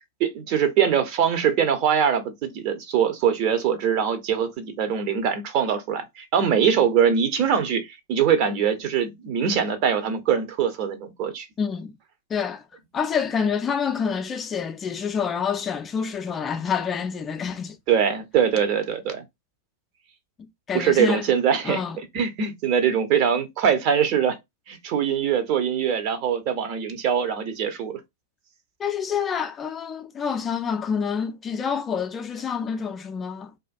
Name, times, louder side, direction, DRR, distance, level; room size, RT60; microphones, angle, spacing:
voice 1, 0.2-7.8 8.1-11.5 17.9-19.2 20.7-24.4 24.7-28.0, right 8 dB, 45° right, 0.6 m, -22 dB
voice 2, 11.6-11.9 12.3-12.6 12.9-17.8 20.7-21.3 21.6-22.0 28.8-33.5, left 6 dB, 20° left, 0.3 m, -27 dB
2.4 x 2.2 x 2.5 m
figure-of-eight pair, 100°, 0 cm